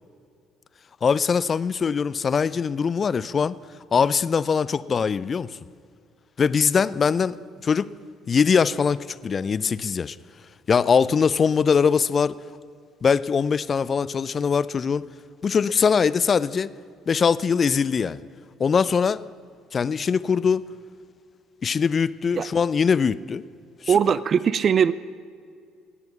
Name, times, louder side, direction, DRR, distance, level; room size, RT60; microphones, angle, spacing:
voice 1, 1.0-3.6 3.9-5.5 6.4-7.4 7.6-7.9 8.3-10.2 10.7-12.4 13.0-15.1 15.4-16.7 17.1-18.2 18.6-19.2 19.7-20.6 21.6-23.4 23.8-23.9, left 6 dB, 40° left, 18 dB, 0.4 m, -22 dB
voice 2, 23.9-24.9, right 7 dB, 45° right, 17 dB, 0.4 m, -20 dB
18.0 x 7.8 x 7.2 m, 2.2 s
hypercardioid pair, 55°, 0 cm